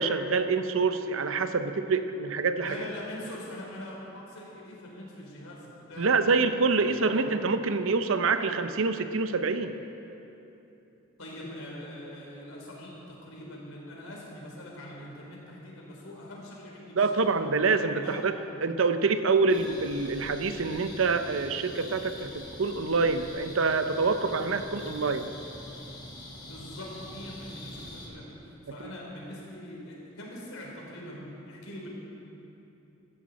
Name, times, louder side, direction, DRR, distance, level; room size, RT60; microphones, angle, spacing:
voice 1, 0.0-2.9 6.0-9.7 17.0-18.3 18.6-25.3, right 4 dB, 70° right, 9 dB, 0.7 m, -26 dB
voice 2, 2.5-7.2 11.2-17.2 17.8-18.3 26.4-31.9, left 1 dB, 80° left, -3 dB, 3.7 m, -43 dB
sound 1, 19.5-28.1, left 1 dB, 20° left, 1.6 m, -44 dB
15.0 x 14.0 x 4.2 m, 3.0 s
head